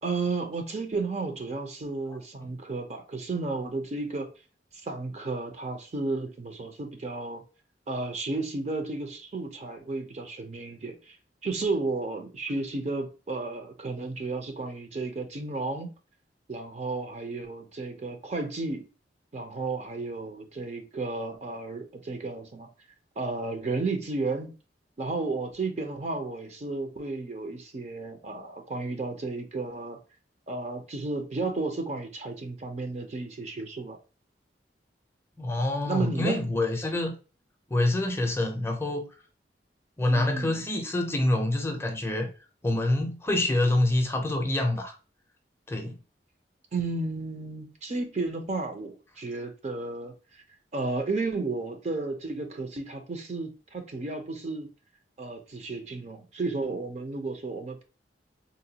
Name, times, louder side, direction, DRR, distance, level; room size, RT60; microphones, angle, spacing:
voice 1, 0.0-4.3 4.8-7.4 7.9-11.2 11.4-15.9 16.5-18.9 19.3-22.7 23.2-24.5 25.0-30.0 30.5-34.0 35.9-36.4 40.0-40.6 46.7-50.4 50.7-54.7 55.2-57.8, right 3 dB, 40° right, 0.6 m, -33 dB
voice 2, 35.4-37.1 37.7-39.1 40.0-42.3 42.6-44.9 45.7-45.9, left 1 dB, 15° left, 0.5 m, -26 dB
3.9 x 2.2 x 2.7 m
head